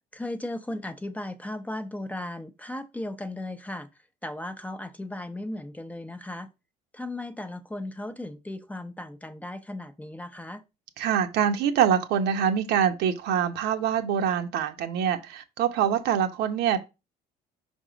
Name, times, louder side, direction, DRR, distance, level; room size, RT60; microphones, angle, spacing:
voice 1, 0.1-3.9 4.2-6.5 6.9-10.6, left 1 dB, 10° left, 0.6 m, -36 dB
voice 2, 11.0-16.8, right 8 dB, 80° right, 0.9 m, -25 dB
5.4 x 3.6 x 5.0 m
cardioid pair, 110°, 17 cm